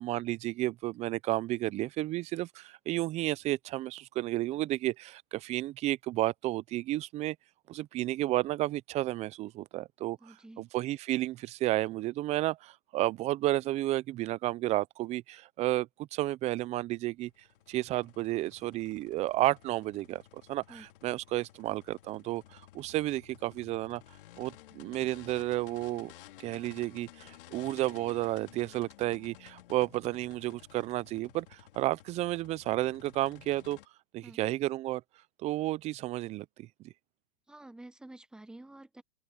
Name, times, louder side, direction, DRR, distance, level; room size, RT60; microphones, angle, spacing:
voice 1, 0.0-7.4 7.7-17.3 17.7-24.0 24.4-26.1 26.4-33.8 34.1-35.0 35.4-36.7, right 16 dB, 20° right, 0.6 m, -32 dB
voice 2, 10.2-10.7 20.7-20.9 34.2-34.4 37.5-39.0, right 2 dB, ahead, 1.1 m, -50 dB
sound 1, 17.3-33.9, left 14 dB, 55° left, 2.7 m, -55 dB
open air
hypercardioid pair, 130°, 31 cm